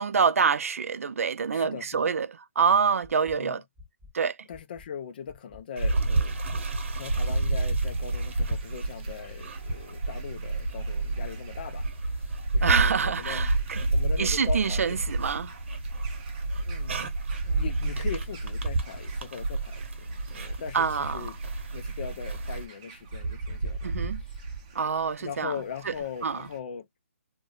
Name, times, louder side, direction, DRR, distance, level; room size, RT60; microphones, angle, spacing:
voice 1, 0.0-2.3 2.6-3.6 4.1-4.4 12.6-13.8 14.2-15.5 20.7-21.3 23.8-24.2 24.8-25.5 25.9-26.0 26.2-26.4, right 6 dB, 80° right, 0.4 m, -26 dB
voice 2, 1.5-2.1 3.3-3.6 4.5-6.4 7.0-12.3 12.5-13.5 13.9-15.1 16.6-17.0 17.4-21.4 21.7-24.4 25.2-26.9, left 7 dB, 40° left, 0.4 m, -40 dB
sound 1, 3.0-3.3 3.8-4.1 4.5-4.8 5.3-5.6 6.0-6.3 6.8-7.1 7.5-7.8 8.3-8.6 9.0-9.3 9.7-10.1 10.5-10.8 11.3-11.6 12.0-12.3 12.8-13.1 13.5-13.8 14.3-14.6 15.0-15.4 15.8-16.1 16.5-16.9, left 4 dB, ahead, 1.3 m, -50 dB
sound 2, 5.8-22.7, right 2 dB, 55° right, 0.8 m, -30 dB
sound 3, 7.0-26.6, right 3 dB, 25° right, 0.6 m, -40 dB
2.5 x 2.2 x 3.8 m
hypercardioid pair, 165°, 8 cm